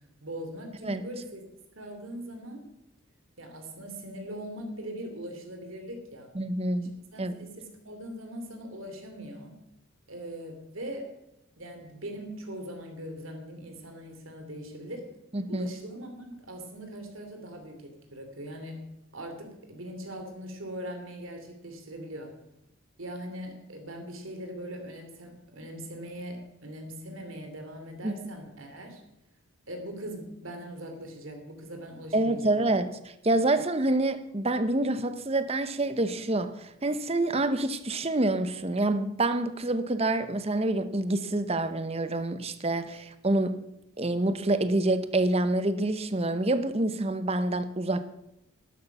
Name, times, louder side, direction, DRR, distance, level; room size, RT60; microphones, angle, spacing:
voice 1, 0.2-1.5 1.7-2.7 3.4-6.3 6.8-9.6 10.1-11.1 11.6-15.1 15.5-18.9 19.1-22.3 23.0-29.0 29.7-32.7, equal, 70° right, 2.9 m, -41 dB
voice 2, 6.3-6.9 7.2-7.3 15.3-15.7 28.0-28.1 32.1-33.0 33.2-43.6 44.0-48.0, right 2 dB, 30° right, 0.8 m, -27 dB
12.5 x 11.5 x 6.0 m
head